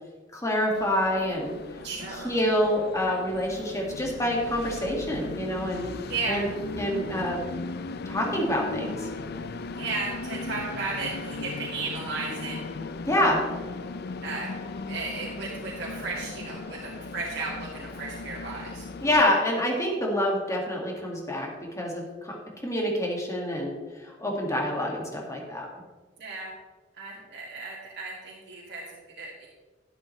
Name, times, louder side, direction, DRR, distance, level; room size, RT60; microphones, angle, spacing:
voice 1, 0.3-1.5 2.2-5.8 6.3-6.5 6.8-7.5 8.1-9.1 13.0-13.4 19.0-21.5 21.8-22.4 22.6-25.7, left 1 dB, 15° left, -1 dB, 2.0 m, -27 dB
Train, 0.7-19.2, left 3 dB, 60° left, 0.5 m, -37 dB
voice 2, 1.8-2.4 6.1-6.5 9.8-12.6 14.2-14.5 14.9-18.9 26.2-26.5 27.0-29.5, right 3 dB, 65° right, -5 dB, 1.9 m, -34 dB
11.5 x 11.5 x 3.2 m, 1.3 s
head